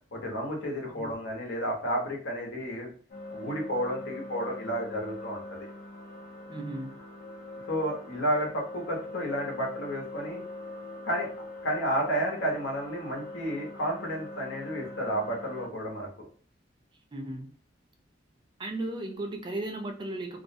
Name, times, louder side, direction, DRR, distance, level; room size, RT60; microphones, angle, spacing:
voice 1, 0.1-2.9 3.3-5.7 7.7-10.4 11.0-11.3 11.6-16.3, equal, 90° left, 0 dB, 0.8 m, -31 dB
sound 1, 3.1-15.7, left 2 dB, 45° left, 0.7 m, -42 dB
voice 2, 6.5-7.0 17.1-17.5 18.6-20.4, right 2 dB, 25° right, 4 dB, 0.3 m, -36 dB
2.4 x 2.0 x 2.6 m, 0.42 s
head